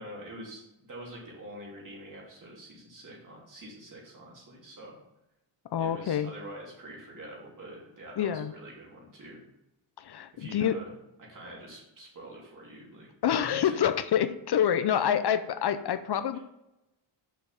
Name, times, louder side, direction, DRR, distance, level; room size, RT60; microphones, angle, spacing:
voice 1, 0.0-5.0 5.8-9.4 10.3-10.9 11.2-13.1 13.4-13.8 14.9-15.1 16.3-16.4, right 1 dB, 40° right, -3 dB, 3.0 m, -45 dB
voice 2, 5.7-6.3 8.2-8.5 10.0-10.8 13.2-16.4, left 9 dB, 55° left, 12 dB, 0.5 m, -27 dB
6.6 x 5.3 x 5.8 m, 0.91 s
wide cardioid pair, 130°, 49 cm